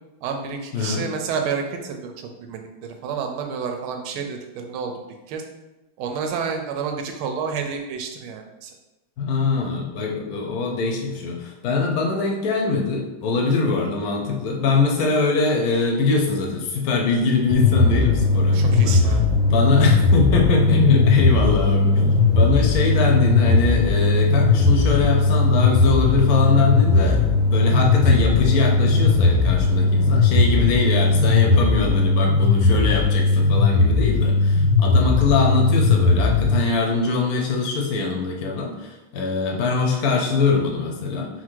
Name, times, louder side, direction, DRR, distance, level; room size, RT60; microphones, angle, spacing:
voice 1, 0.2-4.9 5.3-5.4 6.0-8.7 18.5-19.2, right 6 dB, 90° right, 4 dB, 1.5 m, -29 dB
voice 2, 0.7-1.0 9.2-19.1 19.4-41.3, left 4 dB, 65° left, 1 dB, 0.9 m, -22 dB
sound 1, 17.5-36.5, left 3 dB, 85° left, 1.5 m, -18 dB
sound 2, 17.5-32.1, right 2 dB, 70° right, 0.8 m, -34 dB
4.4 x 2.1 x 4.5 m, 1.0 s
omnidirectional pair, 2.2 m